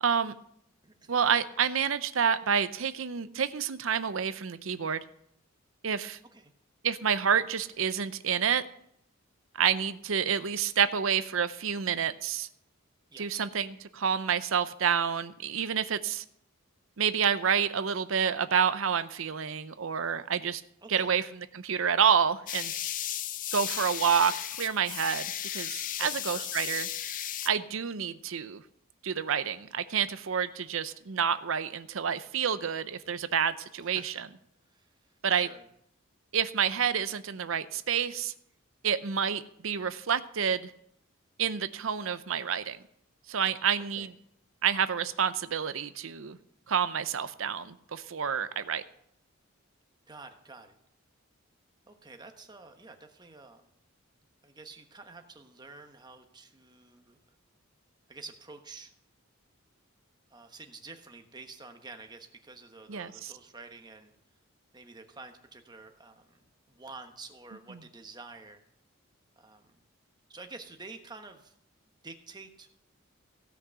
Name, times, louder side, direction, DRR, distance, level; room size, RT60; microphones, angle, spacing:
voice 1, 0.0-0.3 1.1-5.0 5.8-6.2 6.8-8.6 9.6-12.5 13.2-16.2 17.0-20.6 20.9-21.2 21.5-22.7 23.5-24.3 24.6-26.9 27.5-28.6 29.0-34.3 35.2-35.5 36.3-38.3 38.8-40.7 41.4-42.8 43.3-44.1 44.6-46.4 46.7-48.8 62.9-63.3, right 7 dB, 65° right, 13 dB, 0.6 m, -28 dB
voice 2, 0.8-1.1 6.3-6.5 13.1-13.5 20.8-21.1 26.0-26.8 33.0-33.1 33.8-34.2 34.7-34.9 35.2-35.6 43.8-44.1 50.1-50.8 51.9-53.7 54.4-57.2 58.1-58.9 60.3-64.1 64.7-68.6 69.4-69.8 70.3-71.5 72.0-72.7, right 3 dB, 20° right, 5 dB, 1.2 m, -49 dB
sound 1, 22.5-27.5, left 11 dB, 40° left, 0.5 m, -35 dB
16.5 x 6.1 x 8.0 m, 0.71 s
head